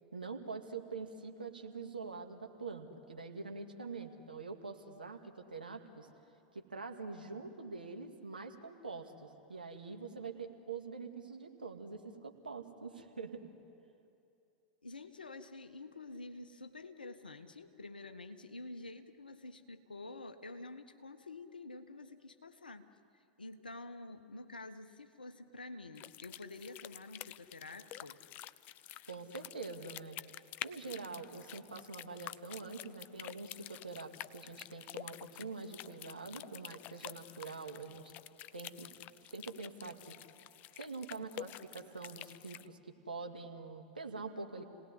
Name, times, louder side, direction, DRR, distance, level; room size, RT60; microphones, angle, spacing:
voice 1, 0.1-6.1 6.5-13.5 29.1-30.2 30.6-38.1 38.5-38.9 39.3-40.1 40.8-44.6, right 4 dB, 85° right, 4 dB, 2.2 m, -45 dB
voice 2, 14.8-22.9 23.4-28.2, left 2 dB, 85° left, 8 dB, 1.4 m, -48 dB
sound 1, 26.0-42.7, left 13 dB, 40° left, 0.6 m, -49 dB
29.5 x 18.5 x 9.9 m, 2.7 s
figure-of-eight pair, 95°, 5 cm